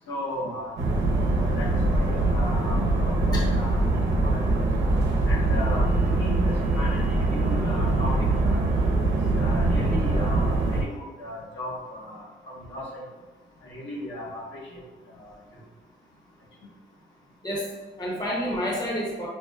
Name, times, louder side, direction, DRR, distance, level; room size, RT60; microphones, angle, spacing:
voice 1, 0.1-3.8 4.2-4.5 5.3-8.1 8.4-8.6 9.4-13.0 13.6-14.8 15.2-15.4, left 1 dB, 70° left, -5 dB, 1.3 m, -36 dB
sound 1, 0.8-10.8, right 2 dB, 75° right, 0.8 m, -23 dB
voice 2, 17.4-19.3, equal, 20° left, -4 dB, 1.0 m, -29 dB
5.8 x 2.1 x 2.5 m, 1.3 s
cardioid pair, 90°, 20 cm